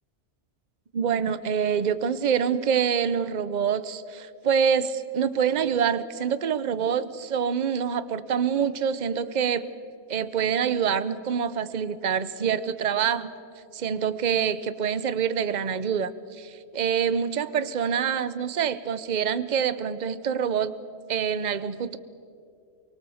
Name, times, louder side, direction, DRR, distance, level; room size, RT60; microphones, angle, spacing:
voice 1, 0.9-9.7 10.1-13.3 13.7-20.7 21.1-22.0, right 7 dB, 45° right, 15 dB, 0.9 m, -26 dB
24.0 x 23.5 x 7.1 m, 2.5 s
omnidirectional pair, 1.2 m